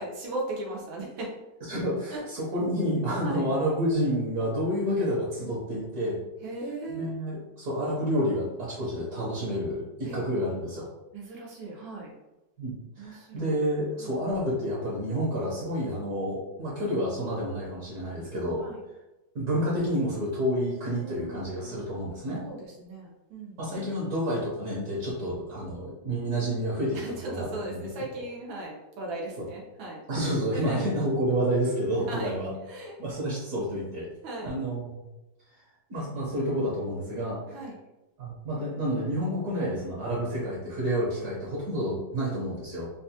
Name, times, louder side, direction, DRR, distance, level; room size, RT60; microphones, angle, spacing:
voice 1, 0.0-1.3 2.1-2.2 3.2-3.5 6.4-7.1 10.0-10.2 11.1-12.1 13.0-13.6 14.0-14.1 18.6-18.8 21.0-21.9 22.4-23.6 26.9-30.0 30.5-30.8 32.1-32.3 32.7-33.0 34.2-34.5 37.5-37.8, right 2 dB, 90° right, -3 dB, 1.6 m, -38 dB
voice 2, 1.7-6.2 6.9-10.9 12.6-18.6 19.3-22.4 23.6-27.8 30.1-32.5 33.0-34.1 34.4-35.1 35.9-37.4 38.2-42.9, equal, 60° right, -6 dB, 1.4 m, -29 dB
4.4 x 2.2 x 2.8 m, 0.98 s
omnidirectional pair, 2.0 m